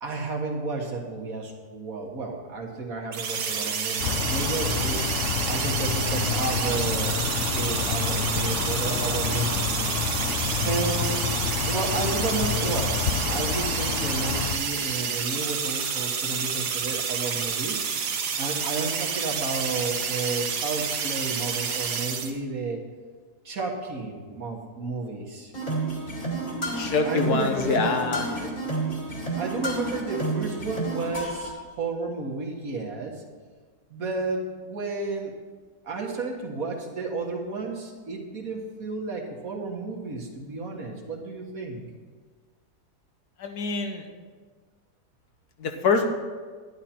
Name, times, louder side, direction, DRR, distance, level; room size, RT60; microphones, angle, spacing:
voice 1, 0.0-5.0 5.5-9.9 10.6-11.3 11.7-17.8 18.4-22.8 23.4-25.5 27.0-27.9 28.2-28.6 29.4-33.2 33.9-35.3 35.8-41.9, right 3 dB, 60° right, 1 dB, 1.9 m, -32 dB
sound 1, 3.1-22.3, right 6 dB, 85° right, 1.5 m, -29 dB
sound 2, 4.0-14.6, left 7 dB, 60° left, 1.0 m, -28 dB
sound 3, 25.5-31.5, right 2 dB, 35° left, 2.3 m, -30 dB
voice 2, 26.7-28.3 43.4-44.1 45.6-46.1, left 4 dB, 75° left, 5 dB, 1.6 m, -25 dB
11.5 x 10.5 x 4.4 m, 1.5 s
omnidirectional pair, 1.7 m